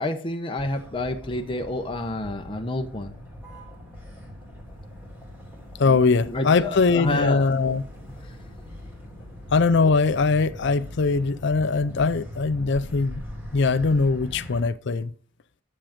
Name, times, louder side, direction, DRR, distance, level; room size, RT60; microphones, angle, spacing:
voice 1, 0.0-3.1 5.9-7.5, left 2 dB, 25° left, 0.9 m, -29 dB
Motor vehicle (road), 0.6-14.6, left 1 dB, 10° right, 2.9 m, -41 dB
voice 2, 5.8-7.8 9.5-13.2 13.5-15.1, left 4 dB, 60° left, 0.5 m, -21 dB
10.0 x 7.4 x 5.1 m
head